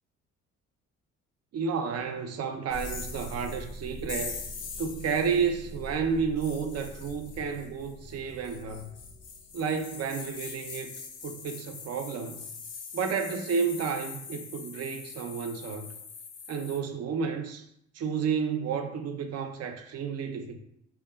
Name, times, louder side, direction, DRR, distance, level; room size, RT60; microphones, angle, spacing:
voice 1, 1.5-4.4 4.8-8.9 9.5-10.9 11.2-12.4 12.9-15.9 16.5-17.7 17.9-20.6, right 6 dB, 55° right, 0.6 m, -31 dB
sound 1, 2.7-16.8, left 3 dB, 55° left, 0.6 m, -42 dB
3.6 x 3.4 x 2.3 m
cardioid pair, 90°, 30 cm